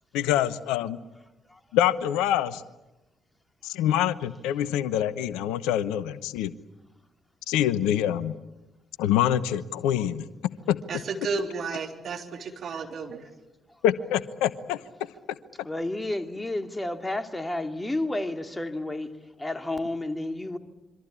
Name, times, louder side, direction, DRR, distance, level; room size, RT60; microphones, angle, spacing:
voice 1, 0.1-1.0 1.7-2.6 3.6-6.5 7.5-8.3 9.0-10.2 10.7-10.8 13.8-14.8, left 11 dB, 70° left, 0.9 m, -25 dB
voice 2, 10.9-13.2, right 4 dB, 50° right, 3.6 m, -32 dB
voice 3, 15.6-19.1 19.4-20.6, left 1 dB, 15° left, 2.6 m, -31 dB
26.5 x 24.5 x 8.6 m
figure-of-eight pair, 40°, 0 cm